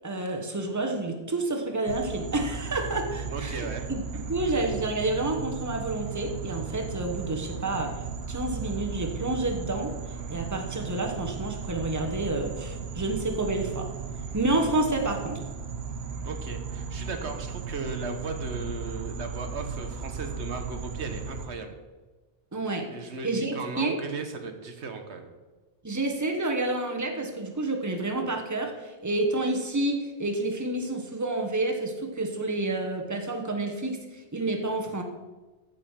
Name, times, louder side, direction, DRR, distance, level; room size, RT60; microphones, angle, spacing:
voice 1, 0.0-7.9 8.3-9.9 10.3-13.9 14.3-15.4 22.5-24.0 25.8-35.0, right 2 dB, 15° right, 3 dB, 1.2 m, -29 dB
sound 1, 1.9-21.5, right 6 dB, 70° right, 1.1 m, -36 dB
voice 2, 3.3-4.5 16.2-21.8 22.9-25.3, right 4 dB, 90° right, 6 dB, 1.5 m, -36 dB
14.5 x 5.4 x 5.7 m, 1.2 s
omnidirectional pair, 1.1 m